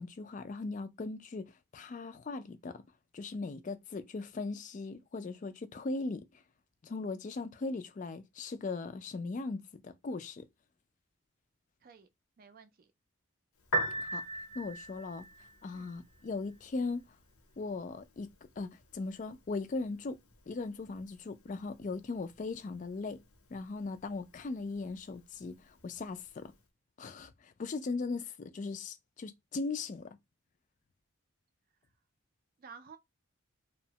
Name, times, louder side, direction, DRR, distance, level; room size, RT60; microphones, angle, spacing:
voice 1, 0.0-2.8 3.1-6.4 6.8-10.5 14.0-14.2 14.5-15.3 15.6-17.0 17.6-20.2 20.5-23.2 23.5-26.5 27.0-30.1, left 3 dB, 35° left, 0.3 m, -39 dB
voice 2, 12.4-12.9 15.7-15.9 32.6-33.0, right 5 dB, 45° right, 0.3 m, -53 dB
Piano, 13.6-26.6, right 2 dB, 90° left, 0.7 m, -43 dB
2.8 x 2.1 x 2.7 m
head